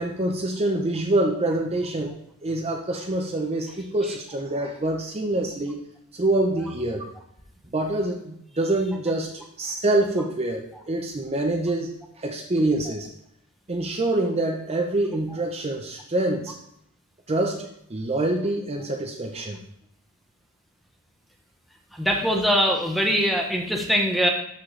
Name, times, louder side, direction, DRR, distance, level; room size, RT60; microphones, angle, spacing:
voice 1, 0.0-5.8 6.1-7.1 7.7-11.9 12.2-13.1 13.7-16.5 17.3-19.6, right 2 dB, 30° right, 1 dB, 0.7 m, -26 dB
voice 2, 21.9-24.3, equal, ahead, 1 dB, 1.0 m, -22 dB
12.0 x 4.2 x 3.3 m, 0.73 s
head